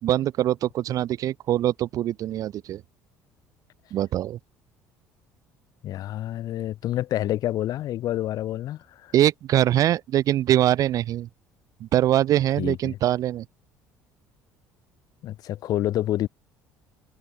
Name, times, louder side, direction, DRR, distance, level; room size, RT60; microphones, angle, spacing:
voice 1, 0.0-2.8 3.9-4.4 9.1-11.3 11.8-13.5, right 12 dB, 55° right, 0.4 m, -23 dB
voice 2, 5.8-9.1 12.6-13.0 15.2-16.3, left 13 dB, 60° left, 2.1 m, -28 dB
supercardioid pair, 75°, 7 cm